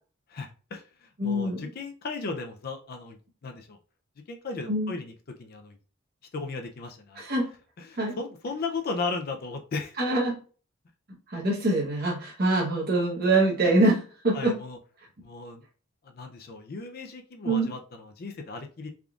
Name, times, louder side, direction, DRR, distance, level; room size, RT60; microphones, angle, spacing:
voice 1, 0.3-3.2 3.4-3.8 4.3-5.1 5.4-5.8 6.3-7.2 7.8-10.0 14.3-14.8 15.2-15.6 16.0-18.9, left 3 dB, 45° left, 4 dB, 0.4 m, -36 dB
voice 2, 1.2-1.6 4.7-4.9 7.2-7.5 8.0-8.1 10.0-10.3 11.3-14.5 17.4-17.7, right 2 dB, 50° right, -2 dB, 0.9 m, -24 dB
3.6 x 3.5 x 2.3 m, 0.38 s
head